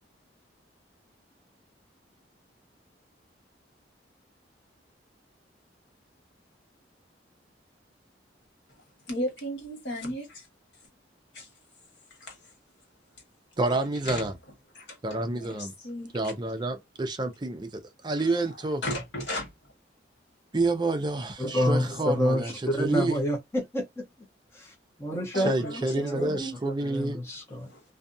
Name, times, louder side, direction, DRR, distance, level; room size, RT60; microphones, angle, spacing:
voice 1, 9.1-10.5 11.3-11.5 12.2-12.4 14.0-14.3 14.7-16.2 18.2-18.5 18.8-19.5 25.3-26.7 27.7-27.8, left 1 dB, 90° left, 1.5 m, -35 dB
voice 2, 13.6-14.3 15.0-15.7 16.1-18.8 20.5-22.5 22.8-23.1 25.3-27.2, right 2 dB, 25° right, 0.4 m, -28 dB
voice 3, 21.4-24.1 24.5-24.7 25.0-26.4 26.8-27.7, equal, 15° left, 0.7 m, -28 dB
2.6 x 2.3 x 2.6 m
head